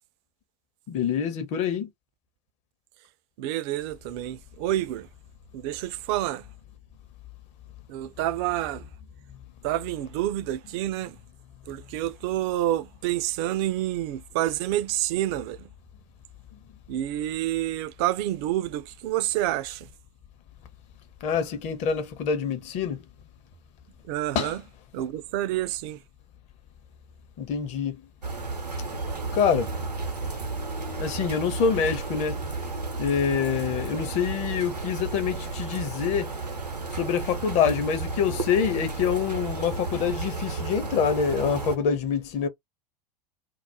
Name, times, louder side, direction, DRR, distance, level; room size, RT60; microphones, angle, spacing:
voice 1, 0.9-1.9 21.2-23.0 24.3-24.6 27.4-28.0 29.3-29.7 31.0-32.4 33.0-36.4 36.9-42.5, left 7 dB, 35° left, 0.7 m, -26 dB
voice 2, 3.4-5.1 5.5-6.4 7.9-8.8 9.6-11.2 11.7-15.6 16.9-19.9 24.1-24.6 24.9-26.0, right 13 dB, 40° right, 0.4 m, -28 dB
sound 1, 28.2-41.8, right 3 dB, 90° right, 0.7 m, -33 dB
2.4 x 2.0 x 2.8 m
figure-of-eight pair, 85°, 20 cm